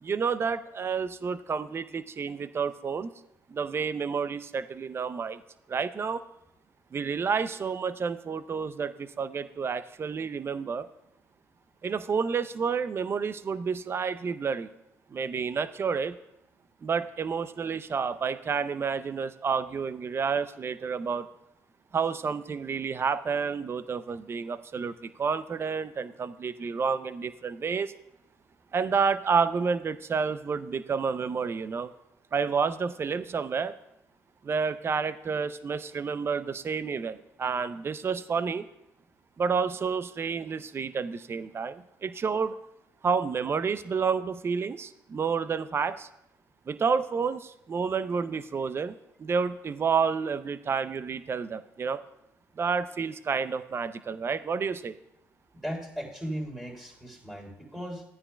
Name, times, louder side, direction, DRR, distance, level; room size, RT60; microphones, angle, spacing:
voice 1, 0.0-3.1 3.5-5.4 5.7-6.2 6.9-10.9 11.8-14.7 15.1-16.2 16.8-21.3 21.9-27.9 28.7-31.9 32.3-33.7 34.4-38.7 39.4-42.5 43.0-46.1 46.7-52.0 52.6-55.0, right 5 dB, 35° right, 14 dB, 0.5 m, -30 dB
voice 2, 55.6-58.0, equal, 5° right, 0 dB, 3.6 m, -37 dB
14.0 x 9.6 x 2.3 m, 0.84 s
supercardioid pair, 70°, 7 cm